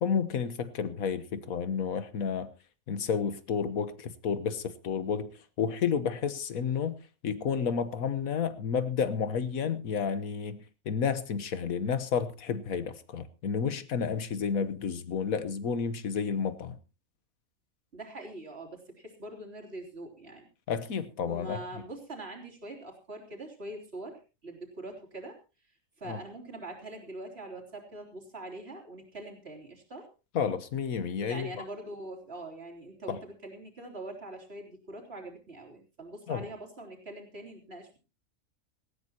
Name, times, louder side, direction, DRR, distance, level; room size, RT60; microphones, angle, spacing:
voice 1, 0.0-2.5 2.9-5.3 5.6-6.9 7.2-16.8 20.7-21.8 26.1-26.2 30.3-31.5 33.1-33.2 36.3-36.5, left 6 dB, 85° left, 13 dB, 1.6 m, -31 dB
voice 2, 17.9-20.5 21.3-25.4 26.0-30.1 31.2-38.0, right 2 dB, 45° right, 0 dB, 3.8 m, -43 dB
18.0 x 15.0 x 2.9 m, 0.31 s
omnidirectional pair, 1.5 m